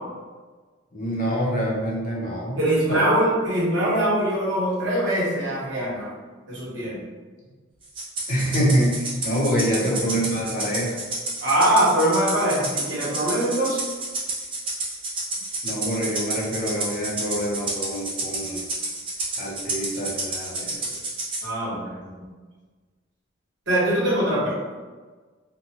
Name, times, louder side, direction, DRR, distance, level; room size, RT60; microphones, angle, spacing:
voice 1, 0.9-2.6 2.9-3.0 8.3-11.0 15.6-18.6 19.4-20.9, equal, 40° left, -4 dB, 0.6 m, -26 dB
voice 2, 2.6-6.1 6.5-7.0 9.7-10.0 11.4-13.8 21.4-22.3 23.7-24.6, right 1 dB, 60° right, -7 dB, 1.1 m, -23 dB
Rattle (instrument), 8.0-21.5, right 2 dB, 25° right, 0.5 m, -30 dB
3.1 x 2.1 x 2.7 m, 1.4 s
head